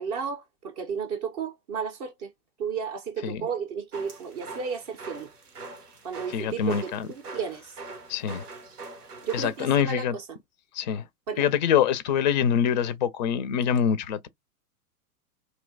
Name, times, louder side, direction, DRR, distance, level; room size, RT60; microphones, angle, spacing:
voice 1, 0.0-2.3 2.6-5.3 6.0-7.7 9.2-10.2 11.3-11.5, right 6 dB, 25° right, 0.5 m, -33 dB
sound 1, 3.9-9.8, right 3 dB, 85° right, 0.8 m, -43 dB
voice 2, 6.3-7.1 8.1-8.4 9.3-10.2 10.7-11.1 11.4-14.3, left 8 dB, 35° left, 0.4 m, -25 dB
2.8 x 2.1 x 2.5 m
figure-of-eight pair, 100°, 45 cm